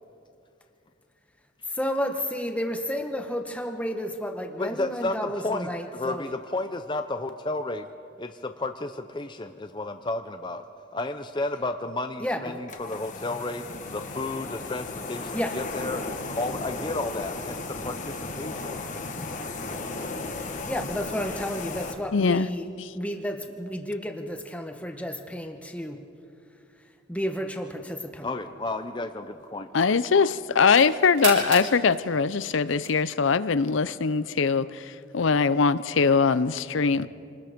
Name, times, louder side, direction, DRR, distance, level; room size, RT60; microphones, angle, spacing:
voice 1, 1.7-6.2 12.2-12.6 15.3-15.6 20.7-22.6 22.9-26.0 27.1-28.3, equal, 5° left, 1.2 m, -31 dB
voice 2, 4.6-7.9 8.2-10.6 10.9-13.7 13.9-16.0 16.4-18.7 28.2-29.7 32.7-32.8, left 2 dB, 20° left, 0.5 m, -32 dB
sound 1, 12.7-21.9, left 3 dB, 40° left, 1.3 m, -35 dB
voice 3, 22.1-22.5 22.8-22.9 29.7-37.1, left 5 dB, 70° left, 0.5 m, -22 dB
sound 2, 28.4-29.9 30.3-33.3, right 4 dB, 70° right, 6.3 m, -35 dB
27.0 x 19.5 x 5.2 m
head